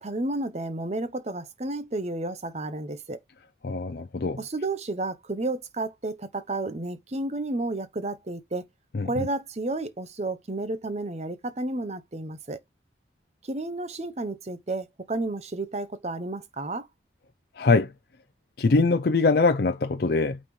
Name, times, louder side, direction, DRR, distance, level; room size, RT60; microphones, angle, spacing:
voice 1, 0.0-3.2 4.4-8.7 9.0-12.6 13.5-16.9, right 2 dB, 35° right, 0.8 m, -31 dB
voice 2, 3.6-4.4 8.9-9.3 17.6-17.9 18.6-20.4, left 3 dB, 55° left, 0.5 m, -23 dB
8.8 x 4.1 x 3.1 m
head